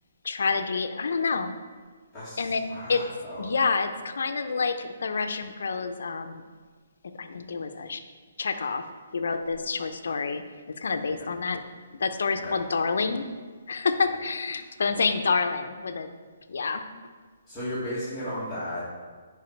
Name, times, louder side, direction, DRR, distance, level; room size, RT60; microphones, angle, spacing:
voice 1, 0.2-1.5 2.4-3.0 3.4-6.4 7.2-8.0 8.4-8.8 9.1-10.4 10.8-11.6 12.0-13.3 13.7-16.1 16.5-16.9, left 4 dB, 75° left, 8 dB, 0.8 m, -28 dB
voice 2, 2.1-3.4 11.2-11.3 12.4-12.5 17.5-18.9, left 1 dB, 10° left, -13 dB, 2.0 m, -35 dB
10.5 x 4.9 x 4.6 m, 1.5 s
hypercardioid pair, 160°, 0 cm